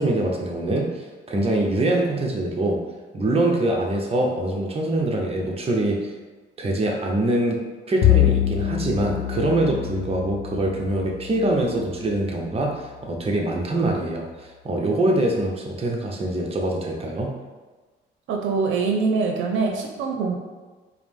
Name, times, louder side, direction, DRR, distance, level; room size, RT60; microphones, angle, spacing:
voice 1, 0.0-2.8 3.1-6.1 6.6-14.3 14.6-17.3, right 1 dB, 30° right, 0 dB, 0.7 m, -24 dB
Bowed string instrument, 8.0-12.6, left 12 dB, 60° left, 0.4 m, -25 dB
voice 2, 18.3-20.4, right 4 dB, 80° right, 2 dB, 0.6 m, -23 dB
4.7 x 2.0 x 3.5 m, 1.3 s
cardioid pair, 90°, 20 cm